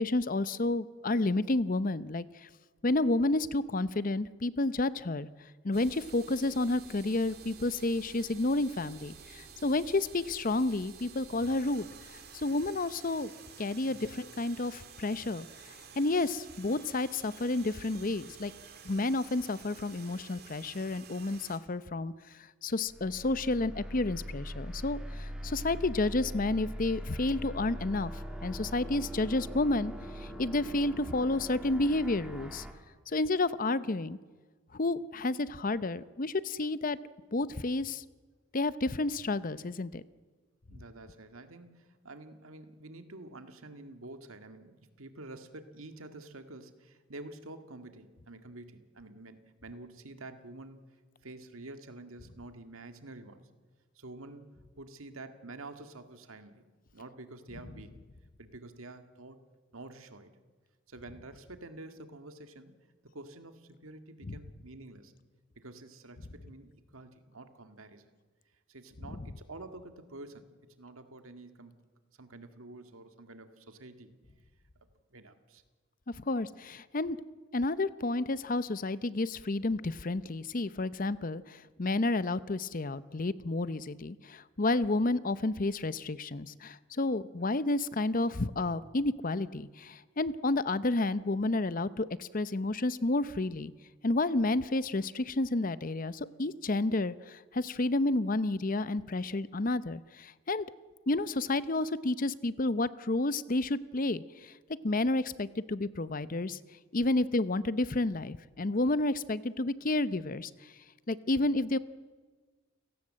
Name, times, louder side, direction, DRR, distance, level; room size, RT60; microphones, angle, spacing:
voice 1, 0.0-2.5 2.8-5.3 5.6-11.9 12.3-13.3 13.6-18.5 18.8-22.1 22.6-32.7 33.1-34.2 34.7-37.0 37.3-38.0 38.5-40.0 64.2-64.4 76.2-77.2 77.5-93.7 94.0-100.7 101.1-104.5 104.8-106.6 106.9-110.7 111.1-111.8, left 2 dB, 40° left, 16 dB, 0.7 m, -30 dB
sound 1, 5.7-21.6, right 6 dB, 50° right, 2.7 m, -51 dB
sound 2, 22.9-32.7, equal, 5° right, 2.5 m, -41 dB
voice 2, 40.7-50.8 51.2-53.5 54.0-54.5 54.8-56.6 56.9-58.0 58.4-59.4 59.7-60.3 60.9-62.7 63.1-65.2 65.6-68.1 68.7-71.7 72.2-74.2 75.1-75.6, right 2 dB, 85° right, 8 dB, 1.9 m, -48 dB
29.5 x 17.5 x 7.5 m, 1.4 s
head